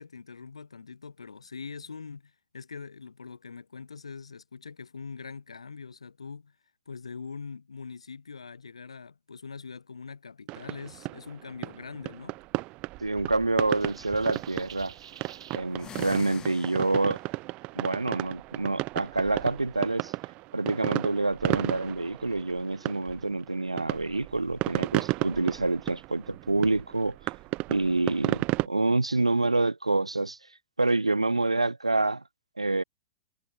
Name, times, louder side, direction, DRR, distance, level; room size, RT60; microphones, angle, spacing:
voice 1, 0.0-6.6 6.9-12.4, left 5 dB, 75° left, 7.4 m, -43 dB
sound 1, 10.5-28.7, right 23 dB, 35° right, 0.6 m, -33 dB
voice 2, 13.0-14.9 15.5-17.2 17.8-20.1 20.5-27.2 27.7-30.4 30.8-32.2 32.6-32.8, right 2 dB, 85° right, 0.4 m, -27 dB
sound 2, 13.7-15.6, right 9 dB, 65° right, 4.1 m, -49 dB
sound 3, 15.7-17.3, left 9 dB, 20° left, 1.7 m, -45 dB
figure-of-eight pair, 100°, 3 cm